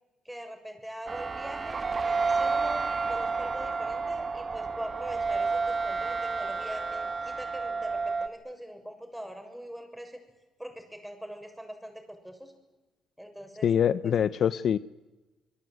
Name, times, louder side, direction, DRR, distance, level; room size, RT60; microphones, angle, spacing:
voice 1, 0.2-10.2 10.6-12.5 13.2-13.7 14.0-14.1, equal, 5° right, 5 dB, 7.2 m, -42 dB
sound 1, 1.1-8.3, right 4 dB, 35° right, 2.4 m, -30 dB
voice 2, 13.6-14.8, left 8 dB, 60° left, 16 dB, 0.8 m, -24 dB
27.0 x 21.5 x 9.5 m, 1.2 s
supercardioid pair, 75°, 0 cm